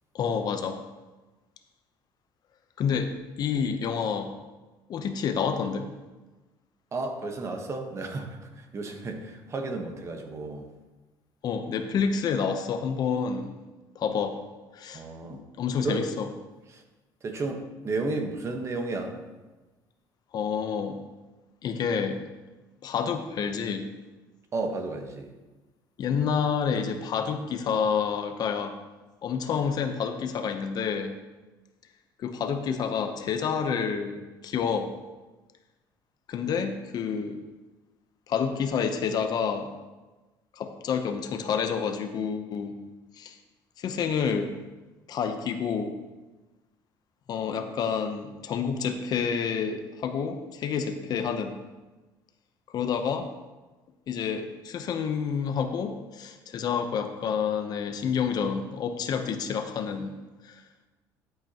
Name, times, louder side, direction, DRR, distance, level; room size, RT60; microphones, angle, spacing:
voice 1, 0.1-0.8 2.8-4.3 4.9-5.9 11.4-13.6 13.9-14.4 14.7-15.0 15.3-16.3 20.3-21.0 21.6-22.2 22.8-23.9 26.0-28.7 29.2-31.2 32.2-34.9 36.3-37.4 38.3-39.7 40.5-42.8 43.2-43.3 43.8-44.5 45.1-46.0 47.3-51.5 52.7-53.3 54.1-60.1 60.4-60.6, left 6 dB, 50° left, 7 dB, 0.8 m, -29 dB
voice 2, 6.9-10.7 14.9-15.4 15.8-16.1 16.7-16.8 17.2-19.2 24.5-25.3, right 3 dB, 35° right, 4 dB, 1.2 m, -32 dB
12.0 x 7.9 x 2.9 m, 1.2 s
cardioid pair, 125°, 9 cm